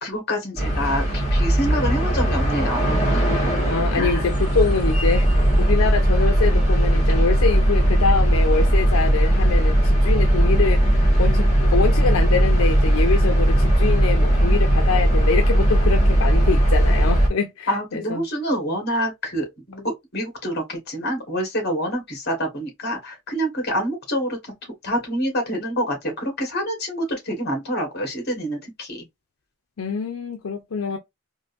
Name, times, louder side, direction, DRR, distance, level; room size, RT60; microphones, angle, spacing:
voice 1, 0.0-3.2 3.9-4.2 17.7-19.8 20.1-24.4 24.8-29.0, equal, 50° left, 1.5 m, -26 dB
sound 1, 0.6-17.3, right 1 dB, 35° left, 1.7 m, -18 dB
voice 2, 3.7-18.2 29.8-31.0, left 5 dB, 80° left, 0.5 m, -25 dB
3.8 x 2.6 x 2.5 m
head